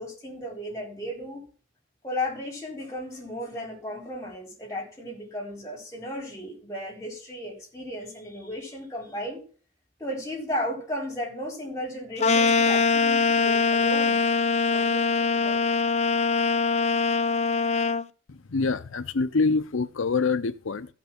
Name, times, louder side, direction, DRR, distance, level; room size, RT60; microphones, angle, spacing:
voice 1, 0.0-1.4 2.0-9.4 10.0-14.3 14.7-15.8, left 1 dB, 15° left, 4.3 m, -35 dB
sound 1, 12.2-18.0, left 4 dB, 30° left, 0.5 m, -22 dB
voice 2, 18.3-20.9, left 4 dB, 75° left, 0.6 m, -26 dB
15.0 x 6.0 x 5.9 m
head